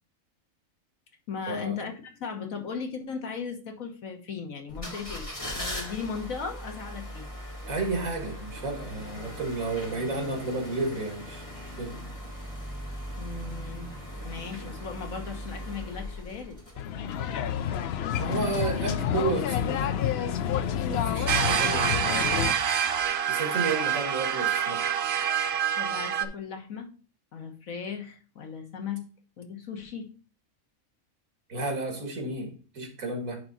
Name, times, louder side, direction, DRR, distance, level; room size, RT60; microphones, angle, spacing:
voice 1, 1.3-5.3 5.5-7.3 13.1-13.9 14.2-16.6 25.8-26.9 27.3-29.0 29.4-30.1, left 6 dB, 80° left, 1.7 m, -37 dB
sound 1, 4.7-17.2 17.6-17.7, equal, 25° left, 1.7 m, -39 dB
voice 2, 7.7-11.9 18.1-19.9 20.2-22.4 23.3-24.8 31.5-33.4, right 3 dB, 85° right, 2.3 m, -32 dB
sound 2, 16.8-22.5, left 9 dB, 60° left, 0.7 m, -29 dB
sound 3, 21.3-26.3, right 8 dB, 60° right, 0.8 m, -26 dB
10.5 x 3.7 x 4.1 m
omnidirectional pair, 1.4 m